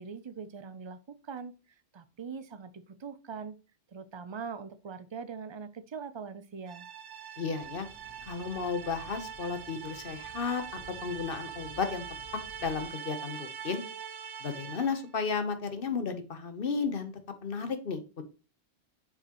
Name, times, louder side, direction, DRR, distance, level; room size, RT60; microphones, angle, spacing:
voice 1, 0.0-1.5 1.9-3.6 3.9-6.9, right 6 dB, 40° right, 0.4 m, -42 dB
sound 1, 6.7-15.1, right 8 dB, 85° right, 1.1 m, -43 dB
voice 2, 7.4-7.9 8.2-10.6 11.0-12.0 12.6-13.8 14.4-17.1 17.4-18.2, left 5 dB, 55° left, 1.1 m, -33 dB
sound 2, 7.5-12.9, right 4 dB, 60° right, 1.1 m, -54 dB
7.5 x 4.8 x 2.9 m
omnidirectional pair, 1.2 m